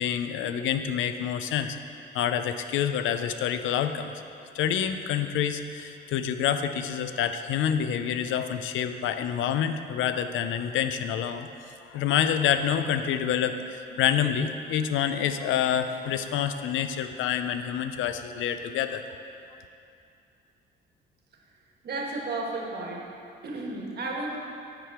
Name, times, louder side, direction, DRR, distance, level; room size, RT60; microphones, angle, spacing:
voice 1, 0.0-1.8 2.1-4.1 4.5-11.5 11.9-19.0, left 9 dB, 80° left, 9 dB, 0.5 m, -27 dB
voice 2, 21.8-23.0 23.4-24.4, right 2 dB, 55° right, -1 dB, 1.4 m, -33 dB
9.2 x 4.9 x 4.8 m, 2.6 s
cardioid pair, 90°, 20 cm